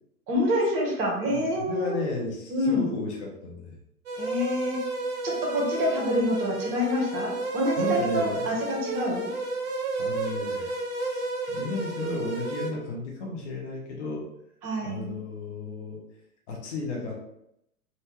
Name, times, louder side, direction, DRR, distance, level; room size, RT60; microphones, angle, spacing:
voice 1, 0.3-1.9 2.5-2.9 4.2-4.8 5.2-9.3 14.6-15.0, left 1 dB, 35° right, -1 dB, 1.1 m, -27 dB
voice 2, 1.2-3.7 7.8-8.6 10.0-14.2 14.8-16.0 16.5-17.1, left 2 dB, 50° left, -1 dB, 1.1 m, -34 dB
sound 1, 4.1-12.7, right 3 dB, 50° right, 0.9 m, -31 dB
3.6 x 2.7 x 3.1 m, 0.80 s
figure-of-eight pair, 100°, 44 cm